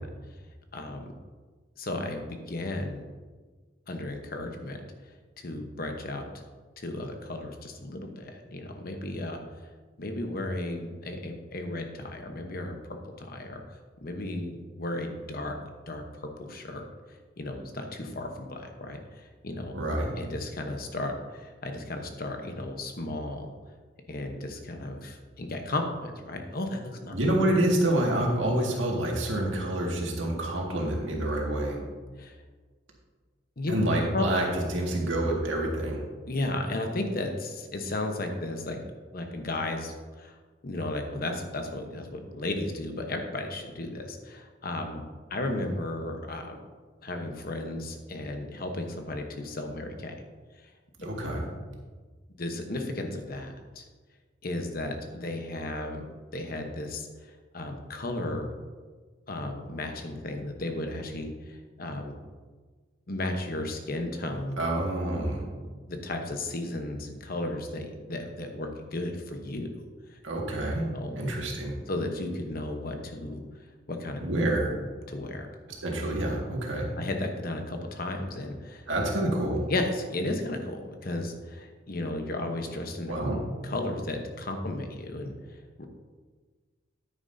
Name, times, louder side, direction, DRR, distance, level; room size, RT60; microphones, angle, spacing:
voice 1, 0.7-1.1 1.8-3.0 3.9-4.8 5.4-6.4 6.8-9.4 10.0-12.8 13.0-13.6 14.0-15.6 15.9-16.8 17.4-19.8 20.2-23.5 24.1-27.1 32.2-32.4 33.6-33.7 34.1-34.2 36.3-38.8 39.1-40.3 40.6-45.0 45.3-46.6 47.0-50.1 50.6-50.7 52.4-53.8 54.4-56.0 56.3-58.5 59.3-62.1 63.1-64.6 65.9-69.7 70.1-70.2 70.9-71.2 71.9-73.4 73.9-74.2 75.1-75.5 77.0-78.9 79.7-83.1 83.6-85.9, left 2 dB, 50° left, 4 dB, 1.0 m, -34 dB
voice 2, 19.7-20.1 27.1-31.8 33.7-36.0 51.0-51.4 64.6-65.4 70.2-70.8 71.2-71.8 74.2-74.7 75.8-76.9 78.9-79.7 83.1-83.4, right 1 dB, 90° right, -1 dB, 1.9 m, -27 dB
9.8 x 9.3 x 2.7 m, 1.4 s
head